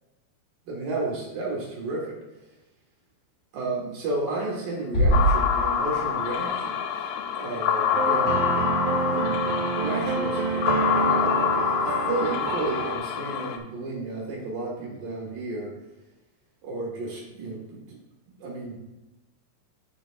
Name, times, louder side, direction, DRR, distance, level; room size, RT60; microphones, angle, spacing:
voice 1, 0.7-2.2 3.5-6.8 7.3-10.6 10.9-15.7 16.6-18.0 18.4-18.9, right 2 dB, 60° right, -2 dB, 3.0 m, -32 dB
sound 1, 4.9-6.9, right 1 dB, 45° left, 3.0 m, -24 dB
sound 2, 5.1-13.6, left 8 dB, 90° left, 2.9 m, -26 dB
sound 3, 7.9-13.0, right 5 dB, 90° right, 3.0 m, -28 dB
13.5 x 5.0 x 2.5 m, 1.0 s
omnidirectional pair, 5.3 m